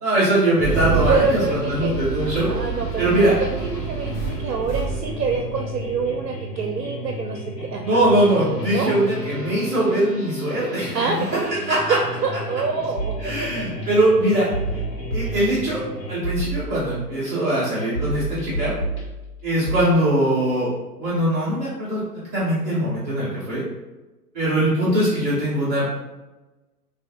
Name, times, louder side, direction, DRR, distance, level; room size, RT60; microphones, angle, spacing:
voice 1, 0.0-1.4 1.7-2.5 3.0-3.4 7.8-11.2 11.7-12.0 13.2-14.5 15.1-15.8 16.1-18.7 19.4-20.7 21.0-22.0 22.3-23.6 24.3-25.8, right 1 dB, 10° right, -10 dB, 0.5 m, -21 dB
sound 1, 0.6-16.2, left 1 dB, 85° left, 0.9 m, -34 dB
Engine starting, 0.6-6.2, right 6 dB, 15° left, 0.9 m, -28 dB
voice 2, 1.1-1.9 2.5-8.0 8.6-8.9 10.9-11.6 11.9-13.8, right 5 dB, 75° right, 2 dB, 0.5 m, -26 dB
sound 2, 13.0-13.9 14.5-15.9 16.2-17.3 17.9-19.8, right 2 dB, 65° left, 1.2 m, -29 dB
3.3 x 2.3 x 2.6 m, 1.1 s
figure-of-eight pair, 125°, 48 cm